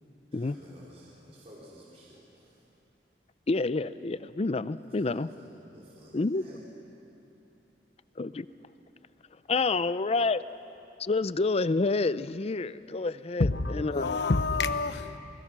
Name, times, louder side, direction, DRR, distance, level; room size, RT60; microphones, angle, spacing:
voice 1, 0.3-2.7 4.9-6.6, equal, 35° right, 3.7 m, -53 dB
voice 2, 3.5-5.3 6.1-6.4 8.2-8.5 9.5-10.4 11.0-14.2, left 3 dB, 35° left, 0.5 m, -28 dB
voice 3, 13.4-15.2, left 3 dB, 70° left, 0.9 m, -28 dB
28.0 x 21.0 x 6.1 m
head